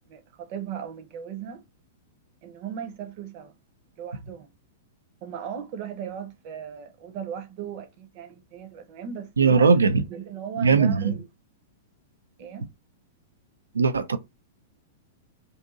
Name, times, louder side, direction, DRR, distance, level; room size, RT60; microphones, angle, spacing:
voice 1, 0.1-1.6 2.4-3.6 4.0-4.5 5.2-9.8 10.1-11.3 12.4-12.7, right 8 dB, 50° right, 0.8 m, -37 dB
voice 2, 9.4-10.0 10.6-11.2 13.7-14.2, right 5 dB, 85° right, 0.5 m, -19 dB
2.7 x 2.5 x 3.7 m
hypercardioid pair, 105°, 0 cm